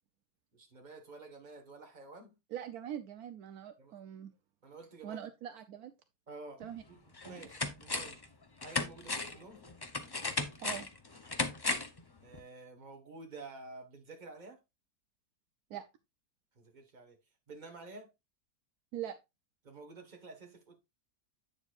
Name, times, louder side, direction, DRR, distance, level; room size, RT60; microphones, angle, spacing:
voice 1, 0.5-2.4 3.8-3.9 4.6-5.3 6.3-8.2 8.6-9.7 12.2-14.6 16.5-17.2 17.5-18.1 19.6-20.8, right 3 dB, 30° right, 1.5 m, -50 dB
voice 2, 2.5-4.3 5.0-5.9 6.6-6.8 7.2-7.4 10.6-10.9 15.7-15.8 18.9-19.2, right 10 dB, 75° right, 1.1 m, -42 dB
sound 1, 6.6-6.7 7.2-8.3 8.6-12.0 12.3-12.4, left 3 dB, 35° left, 0.3 m, -36 dB
8.5 x 7.1 x 2.4 m
omnidirectional pair, 1.7 m